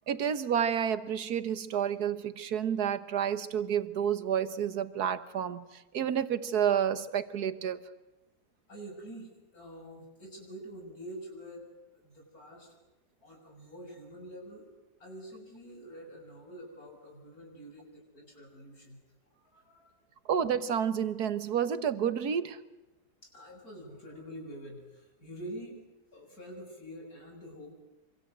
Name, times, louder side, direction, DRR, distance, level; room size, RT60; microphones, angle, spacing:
voice 1, 0.1-7.8 20.3-22.6, right 8 dB, 75° right, 12 dB, 1.7 m, -30 dB
voice 2, 8.7-11.7 11.9-12.8 13.2-14.7 15.0-19.0 19.3-19.9 23.2-25.8 26.1-27.8, right 1 dB, 60° left, 2 dB, 7.5 m, -46 dB
26.5 x 25.5 x 8.0 m, 1.0 s
omnidirectional pair, 1.7 m